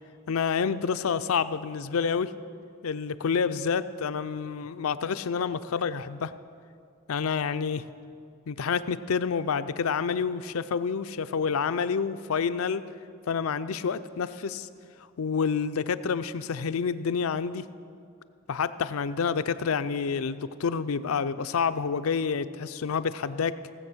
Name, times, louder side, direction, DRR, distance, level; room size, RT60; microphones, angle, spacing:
voice 1, 0.3-2.3 2.8-6.3 7.1-7.8 8.5-12.8 13.3-14.7 15.2-17.7 18.5-23.6, left 6 dB, 80° left, 13 dB, 0.5 m, -28 dB
17.0 x 7.7 x 6.2 m, 2.3 s
head